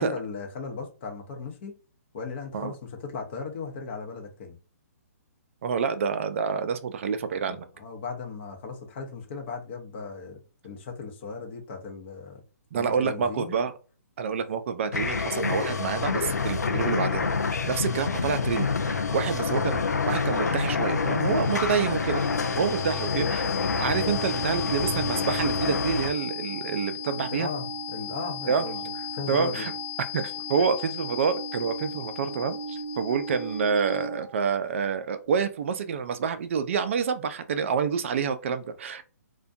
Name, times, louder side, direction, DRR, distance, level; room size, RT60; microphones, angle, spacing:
voice 1, 0.0-1.8 2.1-4.5 7.5-12.4 12.7-13.5 19.1-19.2 21.7-21.9 22.5-22.7 27.3-29.7, left 4 dB, 45° left, 0.7 m, -37 dB
voice 2, 5.6-7.7 12.7-13.7 14.2-17.3 17.6-22.2 22.6-23.5 23.8-27.5 28.5-28.7 29.3-29.7 30.1-39.0, right 6 dB, 50° right, 0.3 m, -28 dB
sound 1, 14.9-26.1, left 5 dB, 90° left, 0.4 m, -27 dB
sound 2, 20.9-34.3, left 3 dB, 5° right, 0.8 m, -35 dB
2.5 x 2.2 x 2.5 m
hypercardioid pair, 135°, 9 cm